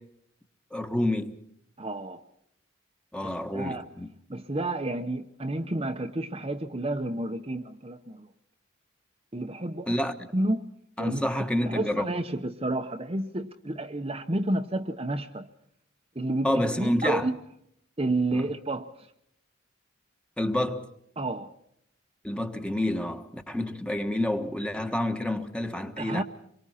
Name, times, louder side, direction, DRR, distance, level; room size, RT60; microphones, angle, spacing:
voice 1, 0.7-1.4 3.1-4.1 9.9-10.1 11.0-12.0 16.4-17.3 18.3-18.4 20.4-20.8 22.2-26.2, left 1 dB, 5° left, 1.4 m, -28 dB
voice 2, 1.8-2.2 3.2-3.8 4.3-8.3 9.3-9.9 10.3-10.7 11.0-11.2 11.7-15.5 16.1-17.4 18.0-19.1 21.2-21.5 26.0-26.2, right 2 dB, 30° right, 0.9 m, -30 dB
27.5 x 23.5 x 4.3 m
head